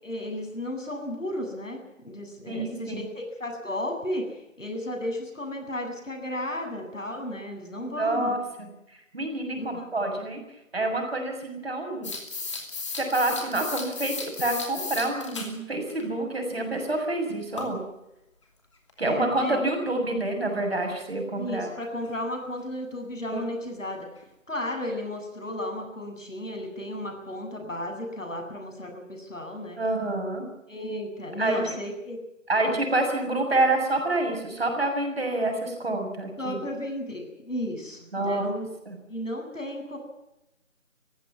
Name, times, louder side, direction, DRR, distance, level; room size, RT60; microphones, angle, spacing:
voice 1, 0.0-1.8 2.0-4.2 4.6-8.3 9.6-9.9 19.0-19.6 21.4-24.1 24.5-29.8 30.7-32.2 36.4-38.7 39.1-40.0, left 1 dB, 75° left, 3 dB, 8.0 m, -34 dB
voice 2, 2.5-3.0 7.8-10.4 10.7-12.1 13.0-17.8 19.0-21.7 23.3-23.4 29.8-30.5 31.4-31.8 32.5-36.6 38.1-38.5 38.9-39.0, right 2 dB, 50° right, 3 dB, 6.8 m, -27 dB
sound 1, 12.0-15.5 15.9-16.0 17.6-17.7 18.9-19.0 22.1-22.2 22.4-22.5 23.0-23.1 23.6-23.7 24.2-24.3, left 4 dB, 25° left, 2.8 m, -35 dB
21.5 x 15.5 x 9.5 m, 0.89 s
figure-of-eight pair, 165°, 39 cm